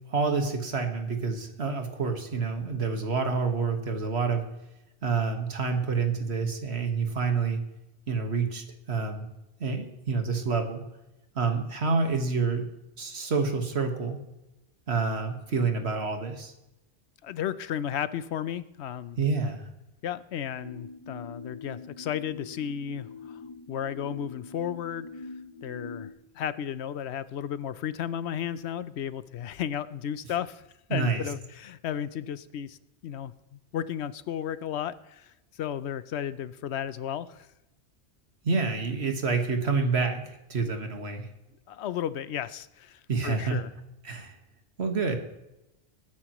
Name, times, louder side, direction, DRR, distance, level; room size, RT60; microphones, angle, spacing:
voice 1, 0.1-4.4 5.0-7.6 8.1-9.3 9.6-10.8 11.4-12.6 13.0-14.2 14.9-16.5 19.2-19.6 30.9-31.2 38.4-41.3 43.1-43.6 44.0-44.3 44.8-45.2, right 4 dB, 70° right, 5 dB, 1.8 m, -28 dB
voice 2, 17.2-19.2 20.0-23.4 23.7-25.1 25.6-30.6 30.9-32.8 33.0-37.5 41.7-43.7, left 9 dB, 75° left, 15 dB, 0.9 m, -34 dB
sound 1, 20.6-26.1, left 4 dB, 50° right, 4.2 m, -43 dB
20.0 x 9.7 x 3.1 m, 0.93 s
omnidirectional pair, 1.1 m